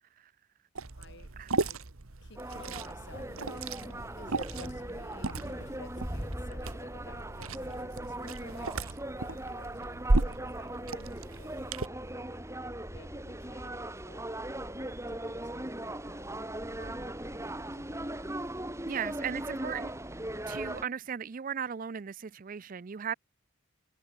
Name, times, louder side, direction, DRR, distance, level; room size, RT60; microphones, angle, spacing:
Liquid, 0.8-11.9, right 2 dB, 80° right, 1.5 m, -35 dB
voice 1, 0.9-1.3 1.6-1.8 2.2-3.9 4.2-12.4 12.9-16.6 16.9-18.2 19.2-19.3, left 2 dB, 55° left, 4.9 m, -55 dB
sound 1, 2.4-20.9, right 1 dB, 15° right, 3.0 m, -39 dB
sound 2, 3.1-7.8, equal, 35° left, 4.3 m, -51 dB
voice 2, 18.9-19.9 20.5-23.2, right 7 dB, 40° right, 0.4 m, -37 dB
head